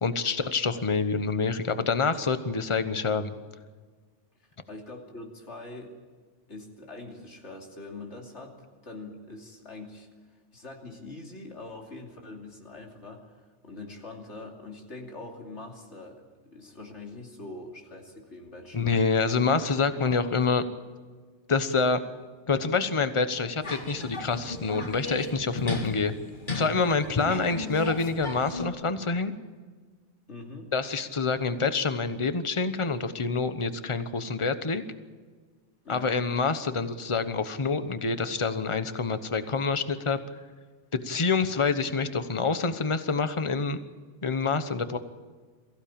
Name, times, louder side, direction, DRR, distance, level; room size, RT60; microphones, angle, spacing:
voice 1, 0.0-3.3 18.7-20.6 21.5-22.0 22.5-26.1 26.5-29.3 30.7-34.8 35.9-40.2 40.9-43.8 44.2-45.0, left 4 dB, 25° left, 10 dB, 1.0 m, -27 dB
voice 2, 4.7-5.9 6.5-10.1 10.5-13.4 13.6-19.0 30.3-30.7 35.8-36.2, left 2 dB, 65° left, 1 dB, 3.2 m, -43 dB
sound 1, 23.6-28.7, left 3 dB, 40° left, 2.0 m, -36 dB
22.5 x 15.5 x 8.8 m, 1.5 s
omnidirectional pair, 1.3 m